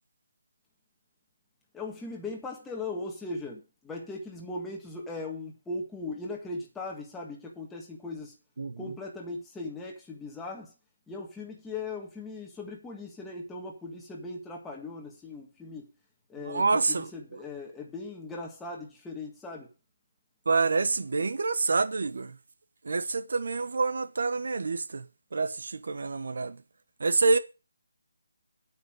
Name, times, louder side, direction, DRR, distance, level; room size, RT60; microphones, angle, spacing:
voice 1, 1.7-8.3 8.8-10.7 11.1-15.9 16.3-19.7, left 3 dB, 5° left, 1.6 m, -39 dB
voice 2, 8.6-8.9 16.5-17.1 20.5-22.4 22.8-25.0 25.3-26.6 27.0-27.4, right 4 dB, 65° right, 1.1 m, -27 dB
8.7 x 5.6 x 7.7 m
figure-of-eight pair, 160°, 0 cm